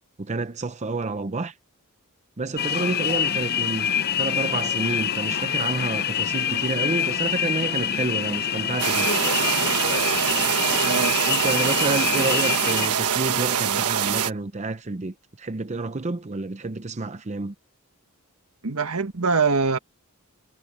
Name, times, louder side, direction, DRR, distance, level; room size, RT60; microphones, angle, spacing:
voice 1, 0.2-1.5 2.4-9.1 11.3-17.5, right 3 dB, 30° right, 0.7 m, -29 dB
sound 1, 2.6-12.9, left 8 dB, 45° left, 0.7 m, -26 dB
sound 2, 8.8-14.3, right 8 dB, 90° right, 1.3 m, -24 dB
voice 2, 10.8-11.2 18.6-19.8, right 4 dB, 70° right, 1.6 m, -23 dB
head